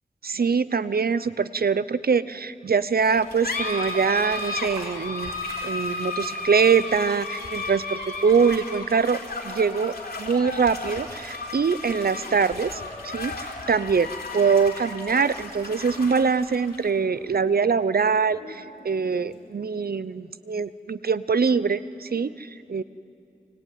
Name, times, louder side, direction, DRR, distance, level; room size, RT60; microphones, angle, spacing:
voice 1, 0.2-5.3 5.6-9.2 9.4-22.8, right 5 dB, 75° right, 15 dB, 0.7 m, -23 dB
sound 1, 3.0-20.0, left 3 dB, 85° left, 3.7 m, -34 dB
25.0 x 23.5 x 9.4 m, 2.6 s
wide cardioid pair, 55°, 16 cm